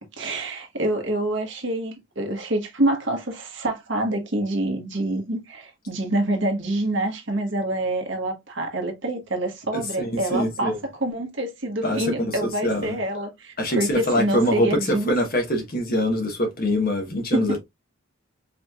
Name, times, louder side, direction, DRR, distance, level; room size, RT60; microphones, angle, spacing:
voice 1, 0.2-10.7 11.0-15.1 17.3-17.6, right 1 dB, 60° right, 1.2 m, -26 dB
voice 2, 9.7-10.8 11.8-13.0 13.6-17.6, equal, 45° left, 1.0 m, -24 dB
4.9 x 3.1 x 2.3 m
head